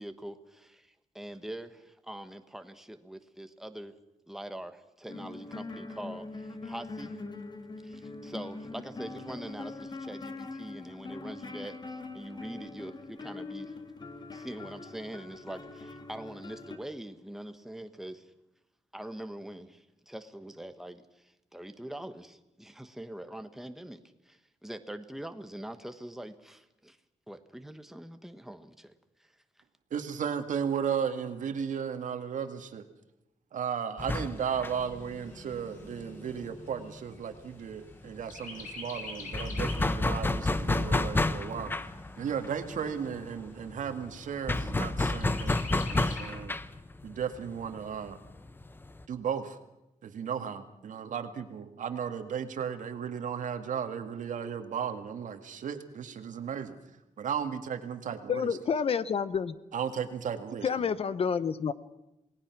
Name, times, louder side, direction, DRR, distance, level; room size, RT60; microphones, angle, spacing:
voice 1, 0.0-3.9 4.3-7.2 7.8-13.7 14.3-18.3 18.9-27.0 27.3-28.9, right 1 dB, 5° right, 9 dB, 1.2 m, -43 dB
sound 1, 5.1-16.8, left 3 dB, 35° left, 2.1 m, -43 dB
voice 2, 29.9-32.9 33.5-41.7 42.2-45.6 45.9-46.5 47.0-48.2 49.1-49.6 50.0-56.8 57.2-58.5 59.7-60.9, right 7 dB, 80° right, 8 dB, 2.0 m, -35 dB
sound 2, 34.0-37.4 37.6-37.8 38.1-49.0, left 2 dB, 15° left, 0.8 m, -31 dB
Chirp tweet, 34.4-37.9 38.3-39.9 40.4-40.5 40.8-41.8 42.4-42.5 42.9-43.0 43.4-43.9 45.2-46.3, left 3 dB, 90° left, 5.2 m, -44 dB
voice 3, 58.3-59.5 60.6-61.7, left 6 dB, 50° left, 15 dB, 0.9 m, -29 dB
28.0 x 19.0 x 6.1 m, 0.88 s
wide cardioid pair, 160°, 13 cm